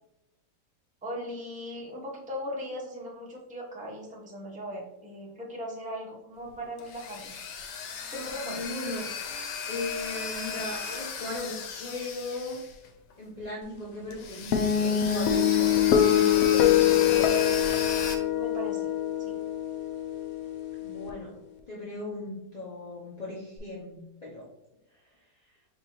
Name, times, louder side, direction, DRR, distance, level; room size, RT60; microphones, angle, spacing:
voice 1, 1.0-7.3 8.1-8.8 18.3-18.9 19.3-19.4, equal, 10° right, -3 dB, 0.5 m, -38 dB
sound 1, 6.5-13.1 13.4-13.5 14.1-18.2, left 6 dB, 90° left, 1.3 m, -36 dB
voice 2, 8.4-9.1 9.6-12.6 13.2-15.8 16.0-17.4 20.8-21.4 21.7-24.5, left 2 dB, 40° left, -6 dB, 0.6 m, -37 dB
sound 2, 14.5-21.1, left 10 dB, 70° left, 0.9 m, -24 dB
5.3 x 3.0 x 3.0 m, 0.89 s
omnidirectional pair, 1.8 m